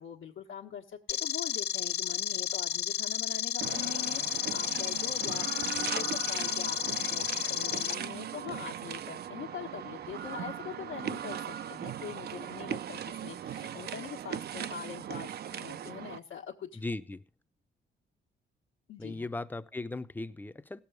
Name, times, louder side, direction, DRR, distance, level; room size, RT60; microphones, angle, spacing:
voice 1, 0.0-16.9 18.9-19.4, left 8 dB, 75° left, 1.3 m, -43 dB
sound 1, 1.1-7.9, left 10 dB, 55° left, 0.5 m, -32 dB
sound 2, 3.6-16.2, right 9 dB, 55° right, 0.5 m, -39 dB
voice 2, 16.8-17.2 19.0-20.8, left 2 dB, 10° left, 0.6 m, -37 dB
17.0 x 7.0 x 4.7 m
cardioid pair, 90°, 20 cm